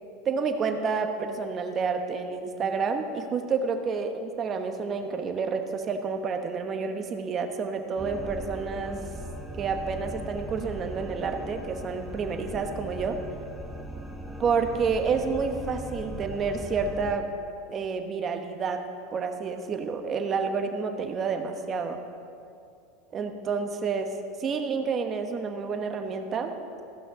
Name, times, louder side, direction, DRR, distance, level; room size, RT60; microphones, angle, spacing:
voice 1, 0.2-9.0 9.6-13.2 14.4-17.3 17.7-18.8 19.1-22.0 23.1-24.1 24.4-26.5, right 5 dB, 30° right, 6 dB, 1.0 m, -29 dB
sound 1, 8.0-17.1, right 1 dB, 5° left, 0.9 m, -39 dB
15.0 x 5.8 x 6.0 m, 2.5 s
supercardioid pair, 130°, 0 cm